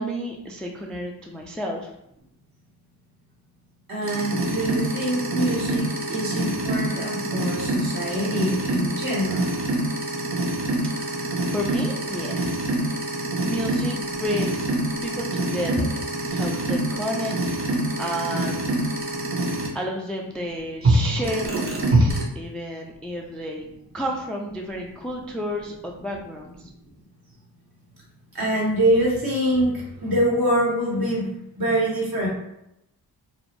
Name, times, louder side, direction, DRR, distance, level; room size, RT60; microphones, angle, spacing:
voice 1, 0.0-1.9 10.9-14.7 15.0-18.9 19.7-23.7 23.9-26.7, equal, ahead, 0 dB, 0.3 m, -32 dB
voice 2, 3.9-9.5 16.3-16.4 28.3-32.3, right 1 dB, 55° right, -5 dB, 1.3 m, -24 dB
sound 1, 4.0-19.7 20.8-22.2, right 1 dB, 30° right, 0.8 m, -25 dB
2.5 x 2.0 x 3.0 m, 0.81 s
supercardioid pair, 50°, 41 cm